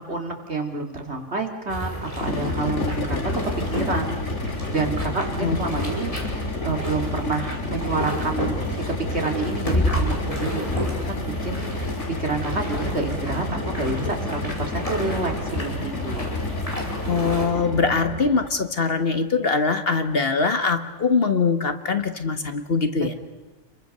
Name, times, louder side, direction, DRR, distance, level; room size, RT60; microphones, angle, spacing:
voice 1, 0.0-3.3 3.7-6.1 6.6-8.8 9.1-11.9 12.2-16.3, right 3 dB, 60° right, 3 dB, 3.1 m, -29 dB
sound 1, 1.7-17.5, equal, 25° left, 5.4 m, -30 dB
sound 2, 2.1-18.5, left 2 dB, 70° left, 2.5 m, -30 dB
voice 2, 17.1-23.1, left 4 dB, 50° left, 8 dB, 1.6 m, -22 dB
30.0 x 23.0 x 6.8 m, 1.1 s
omnidirectional pair, 1.3 m